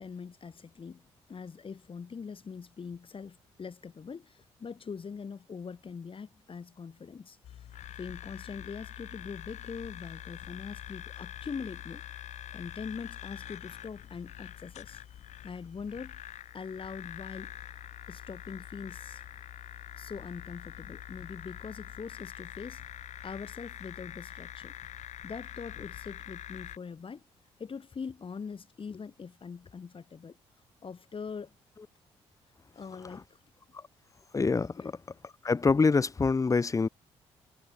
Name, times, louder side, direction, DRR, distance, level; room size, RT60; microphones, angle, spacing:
voice 1, 0.0-7.7 8.0-12.0 12.5-15.0 15.4-16.2 16.5-17.5 18.1-19.2 20.0-22.8 23.2-24.7 25.2-27.2 27.6-30.4 30.8-31.5 32.8-33.4 34.8-34.9, left 5 dB, 45° left, 3.7 m, -42 dB
sound 1, 7.4-26.8, left 11 dB, 65° left, 1.7 m, -45 dB
voice 2, 34.3-34.8 35.4-36.9, left 4 dB, 25° left, 0.7 m, -25 dB
hypercardioid pair, 50°, 13 cm